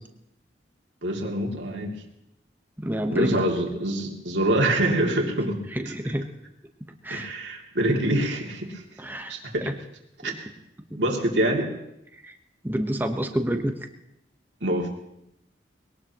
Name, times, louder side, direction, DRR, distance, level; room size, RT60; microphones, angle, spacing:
voice 1, 1.0-1.9 3.1-5.6 7.1-8.8 9.3-9.7 10.2-10.3 11.0-11.7 14.6-14.9, right 1 dB, 85° right, 1 dB, 2.6 m, -25 dB
voice 2, 2.8-3.4 5.7-6.3 7.0-7.3 9.0-9.7 10.2-10.4 10.9-11.0 12.2-12.3 12.6-13.7, equal, 10° right, 5 dB, 1.2 m, -28 dB
21.5 x 18.0 x 3.0 m, 0.82 s
head